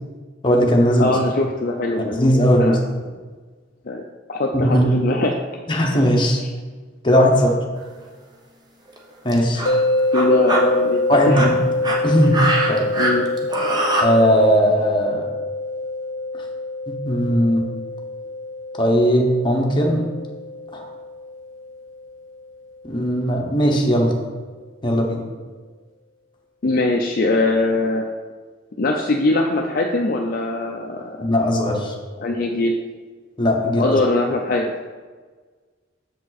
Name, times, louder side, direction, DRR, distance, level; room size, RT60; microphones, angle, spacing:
voice 1, 0.4-1.1 2.1-2.8 4.5-4.9 5.7-6.4 7.0-7.5 9.2-9.6 11.1-11.5 12.0-12.8 14.0-15.3 16.9-17.7 18.8-20.0 20.7-20.9 22.8-24.2 24.8-25.2 31.2-31.9 33.4-34.0, equal, 25° left, 0 dB, 1.0 m, -18 dB
voice 2, 1.0-2.1 2.6-2.8 3.9-4.0 4.3-5.4 10.1-11.0 11.3-11.4 13.0-13.3 26.6-28.1 28.8-31.2 32.2-32.7 33.8-34.7, left 2 dB, 45° left, 1 dB, 0.5 m, -21 dB
sound 1, 7.8-8.0 8.9-9.0 9.3-9.8 10.1-10.6 11.2-14.0, right 1 dB, 20° right, 0.8 m, -23 dB
sound 2, 9.7-22.7, left 2 dB, 85° left, 0.8 m, -26 dB
6.9 x 5.2 x 4.0 m, 1.4 s
head